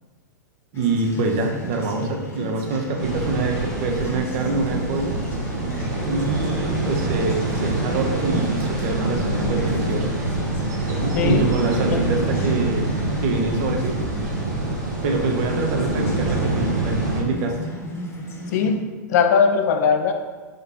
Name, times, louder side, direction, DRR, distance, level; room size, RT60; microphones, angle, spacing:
sound 1, 0.7-18.7, left 1 dB, 25° left, 0.9 m, -36 dB
voice 1, 0.7-5.2 6.1-10.1 10.9-12.9 13.2-14.0 15.0-17.6, right 3 dB, 50° right, 2 dB, 0.6 m, -25 dB
sound 2, 3.0-17.2, right 2 dB, 80° right, 1.1 m, -25 dB
voice 2, 11.2-11.5 11.9-12.0 18.5-20.1, left 6 dB, 65° left, 6 dB, 0.4 m, -19 dB
3.7 x 2.7 x 3.6 m, 1.3 s
hypercardioid pair, 115°, 10 cm